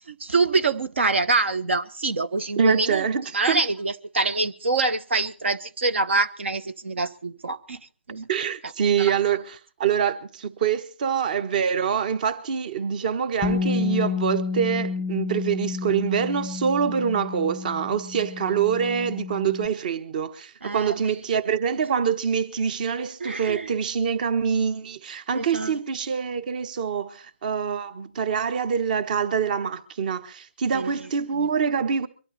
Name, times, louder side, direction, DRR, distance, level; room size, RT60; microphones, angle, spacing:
voice 1, 0.1-7.8 8.1-8.3 8.6-8.7 9.0-9.1 20.6-21.0 23.2-23.7 25.3-25.7 30.7-31.1 31.4-31.5, right 3 dB, 70° right, 1.1 m, -25 dB
voice 2, 2.6-3.6 8.3-32.1, right 7 dB, 40° right, 1.2 m, -25 dB
Bass guitar, 13.4-19.7, left 4 dB, 5° left, 0.8 m, -30 dB
23.5 x 12.5 x 4.2 m
figure-of-eight pair, 150°, 7 cm